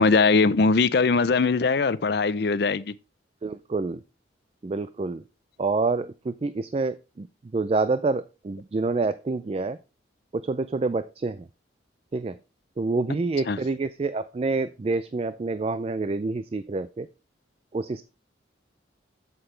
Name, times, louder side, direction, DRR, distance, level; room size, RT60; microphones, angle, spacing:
voice 1, 0.0-2.9 13.5-13.6, left 4 dB, 55° left, 0.5 m, -21 dB
voice 2, 3.4-4.0 4.6-5.2 5.6-7.3 7.5-9.8 10.3-11.5 12.1-12.4 12.8-17.1 17.7-18.0, right 3 dB, 30° right, 0.3 m, -27 dB
8.0 x 7.9 x 3.2 m
head